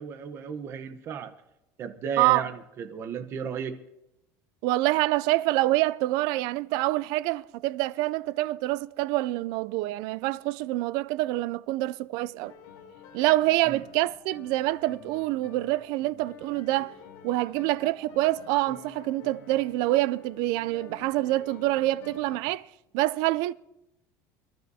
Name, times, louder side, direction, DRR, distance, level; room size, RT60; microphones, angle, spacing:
voice 1, 0.0-1.3 1.8-3.8 13.6-13.8, right 6 dB, 35° right, 1.0 m, -34 dB
voice 2, 4.6-12.5 13.1-16.9 17.2-22.7 22.9-23.5, right 18 dB, 65° right, 0.4 m, -26 dB
sound 1, 12.4-22.4, left 7 dB, 75° left, 3.2 m, -49 dB
27.0 x 12.5 x 2.8 m
cardioid pair, 165°, 7 cm